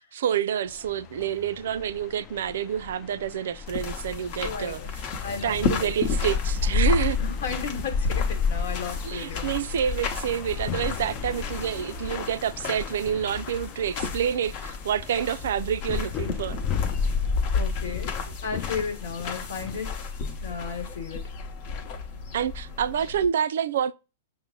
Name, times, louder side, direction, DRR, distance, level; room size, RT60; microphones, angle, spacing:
voice 1, 0.0-4.8 5.4-7.2 9.0-16.6 22.3-23.9, right 8 dB, 70° right, 0.3 m, -28 dB
sound 1, 0.7-19.8, left 10 dB, 30° left, 0.4 m, -40 dB
sound 2, 3.7-23.3, left 5 dB, 45° left, 0.9 m, -30 dB
voice 2, 4.4-4.9 5.2-5.9 7.2-9.6 17.5-18.1 18.4-19.9 20.4-21.2, left 5 dB, 65° left, 1.2 m, -34 dB
5.8 x 2.0 x 3.7 m
hypercardioid pair, 135°, 0 cm